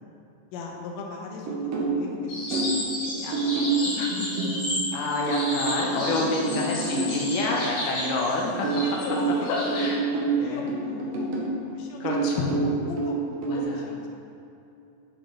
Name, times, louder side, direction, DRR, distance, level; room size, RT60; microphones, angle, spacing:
voice 1, 0.5-4.3 5.8-6.2 8.8-14.0, left 3 dB, 90° left, 0 dB, 1.5 m, -39 dB
sound 1, 1.5-2.9 3.3-7.2 8.6-11.6 12.0-13.6, right 4 dB, 85° right, 1.4 m, -27 dB
sound 2, 2.3-9.9, left 1 dB, 50° left, 1.9 m, -33 dB
voice 2, 4.9-8.7 9.5-10.0 10.4-10.7 12.0-12.5 13.5-13.9, left 2 dB, 75° left, -2 dB, 2.2 m, -28 dB
7.0 x 5.2 x 3.8 m, 2.7 s
omnidirectional pair, 4.1 m